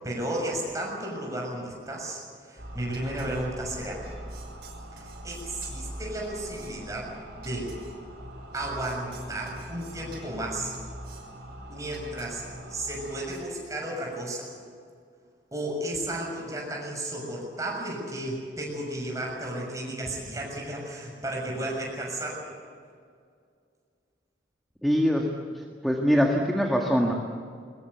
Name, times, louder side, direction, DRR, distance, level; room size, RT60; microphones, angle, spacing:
voice 1, 0.0-4.0 4.9-7.7 8.5-10.7 11.7-12.4 12.7-14.4 15.5-22.4, right 1 dB, 20° right, -1 dB, 6.7 m, -33 dB
sound 1, 2.6-13.4, right 1 dB, 60° right, 6.1 m, -42 dB
voice 2, 24.8-25.3 25.8-27.1, equal, ahead, 0 dB, 1.7 m, -23 dB
22.0 x 21.0 x 8.2 m, 2.2 s
head